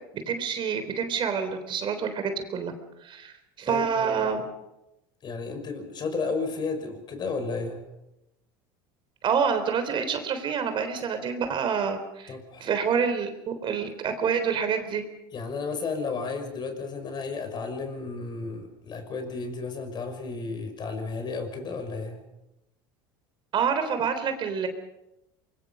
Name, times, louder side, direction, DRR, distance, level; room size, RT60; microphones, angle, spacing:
voice 1, 0.3-2.7 3.0-4.4 9.2-12.4 12.6-15.0 23.5-24.7, right 6 dB, 45° right, 8 dB, 3.6 m, -27 dB
voice 2, 3.7-4.3 5.2-7.8 12.3-12.7 15.3-22.2, left 4 dB, 40° left, 7 dB, 5.7 m, -33 dB
24.5 x 23.0 x 5.5 m, 0.92 s
supercardioid pair, 90°, 12 cm